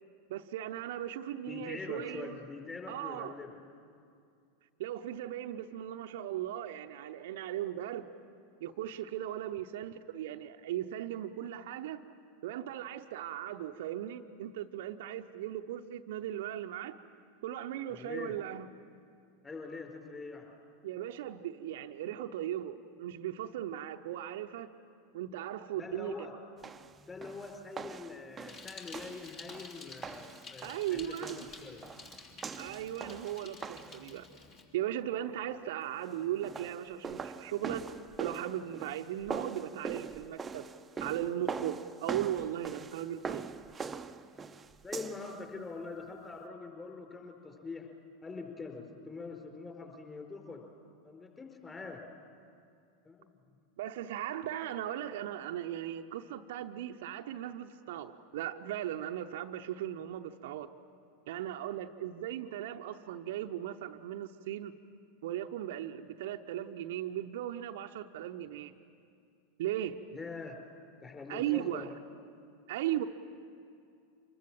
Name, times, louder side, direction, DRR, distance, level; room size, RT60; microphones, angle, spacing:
voice 1, 0.3-2.3 2.9-3.3 4.8-8.1 8.6-12.0 12.4-17.0 17.4-18.7 20.8-24.7 25.1-26.1 30.6-31.5 32.6-34.3 34.7-37.9 38.2-40.7 41.0-43.4 53.8-60.7 61.3-64.7 65.2-68.7 69.6-70.0 71.3-71.9 72.7-73.0, right 12 dB, 60° right, 6 dB, 0.8 m, -37 dB
voice 2, 1.5-3.6 17.9-18.3 19.4-20.5 25.8-26.3 27.0-31.9 44.8-47.9 48.2-50.6 51.0-52.0 53.0-53.4 70.1-70.6 71.0-71.9, left 4 dB, 20° left, 2 dB, 4.8 m, -44 dB
sound 1, 26.6-34.1 36.3-45.4, right 5 dB, 20° right, 0.8 m, -43 dB
Bicycle, 28.5-34.6, left 4 dB, 40° left, 3.3 m, -51 dB
25.0 x 21.5 x 7.6 m, 2.4 s
figure-of-eight pair, 85°, 0 cm